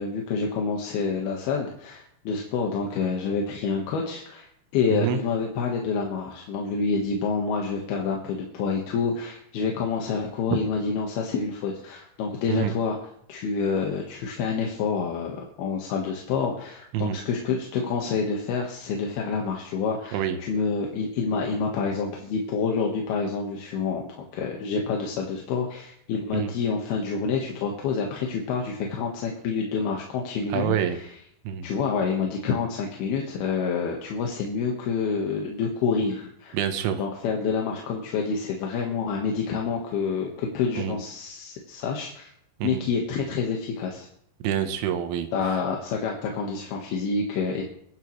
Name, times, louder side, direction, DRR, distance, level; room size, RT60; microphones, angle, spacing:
voice 1, 0.0-13.0 13.3-31.0 31.6-36.6 37.0-42.3 42.6-44.1 45.3-47.6, left 5 dB, 65° left, 0 dB, 3.0 m, -28 dB
voice 2, 4.9-5.2 12.5-12.7 16.9-17.2 20.1-20.4 26.3-26.5 30.5-31.0 31.4-31.7 36.5-37.1 40.8-41.0 42.6-42.8 44.4-45.6, right 10 dB, 80° right, 8 dB, 3.5 m, -27 dB
22.5 x 11.5 x 3.2 m, 0.70 s
omnidirectional pair, 5.5 m